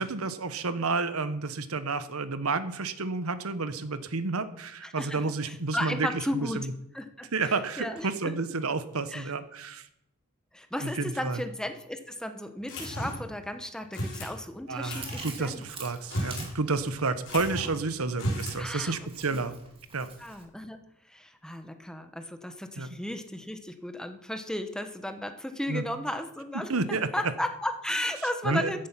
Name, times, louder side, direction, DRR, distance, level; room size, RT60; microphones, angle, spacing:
voice 1, 0.0-6.5 7.3-9.9 10.8-11.4 14.7-19.5 19.9-20.1 22.8-22.9 25.7-25.8 26.7-27.1 28.4-28.7, right 3 dB, 90° right, 12 dB, 1.1 m, -30 dB
voice 2, 4.8-6.7 6.9-8.4 9.1-9.3 10.5-15.6 18.6-19.4 20.2-28.9, left 1 dB, 5° left, 8 dB, 1.0 m, -35 dB
sound 1, 12.7-13.3 13.9-14.3 14.8-15.3 16.0-16.5 16.8-16.9 17.3-17.8 18.1-18.6, equal, 60° left, 5.1 m, -34 dB
Chewing mastication, 15.0-20.4, right 4 dB, 25° right, 2.6 m, -47 dB
14.5 x 10.5 x 5.7 m, 0.79 s
head